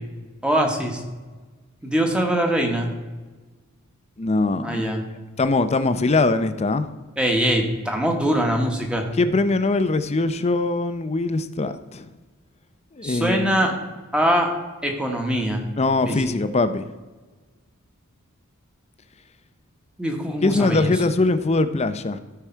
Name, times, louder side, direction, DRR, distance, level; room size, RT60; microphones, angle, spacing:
voice 1, 0.4-1.0 1.8-2.9 4.6-5.0 7.2-9.0 13.0-13.7 14.1-14.5 14.8-15.6 16.1-16.2 20.0-20.9, right 1 dB, 5° right, 1.3 m, -22 dB
voice 2, 4.2-4.8 5.4-6.9 9.2-12.1 13.0-13.5 15.8-16.9 20.4-22.2, left 3 dB, 30° left, 0.5 m, -22 dB
14.0 x 4.8 x 4.5 m
head